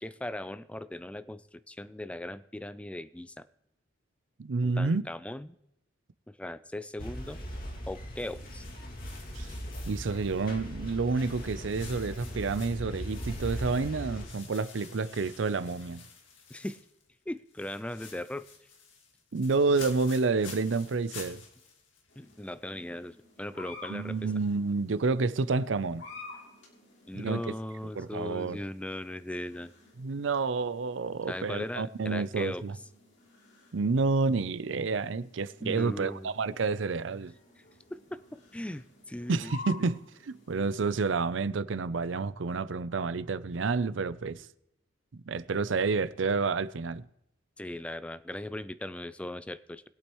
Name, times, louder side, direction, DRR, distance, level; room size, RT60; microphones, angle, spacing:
voice 1, 0.0-3.4 4.6-5.5 6.3-7.4 7.9-8.7 16.5-16.8 17.3-18.5 22.2-24.2 27.1-29.7 31.3-32.6 35.6-36.3 37.9-39.5 47.6-49.8, left 1 dB, 5° left, 0.4 m, -38 dB
voice 2, 4.4-5.0 9.4-9.5 9.9-16.0 19.3-21.4 23.9-26.0 27.1-27.4 28.0-28.6 30.0-32.8 33.7-37.3 39.3-44.5 45.1-47.0, right 4 dB, 75° right, 0.5 m, -29 dB
sound 1, 7.0-14.3, equal, 50° left, 2.2 m, -39 dB
sound 2, 8.2-10.7 11.1-17.1 17.4-22.5, left 5 dB, 85° left, 2.0 m, -50 dB
sound 3, 22.1-41.2, left 4 dB, 70° left, 3.1 m, -52 dB
22.0 x 8.5 x 3.1 m
head